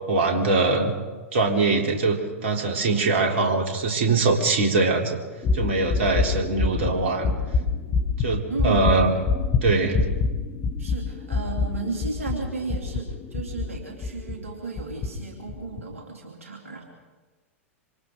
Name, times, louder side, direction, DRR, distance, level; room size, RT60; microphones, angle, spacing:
voice 1, 0.1-0.9 1.3-5.2 5.5-7.4 8.2-9.2 9.6-10.0, right 3 dB, 55° right, 1 dB, 3.6 m, -22 dB
sound 1, 5.4-14.4 14.8-15.1 15.5-15.8, left 4 dB, 30° left, 2.4 m, -26 dB
voice 2, 8.5-9.0 10.8-16.8, right 4 dB, 75° right, 1 dB, 3.1 m, -34 dB
27.0 x 25.5 x 3.9 m, 1.3 s
figure-of-eight pair, 95°, 8 cm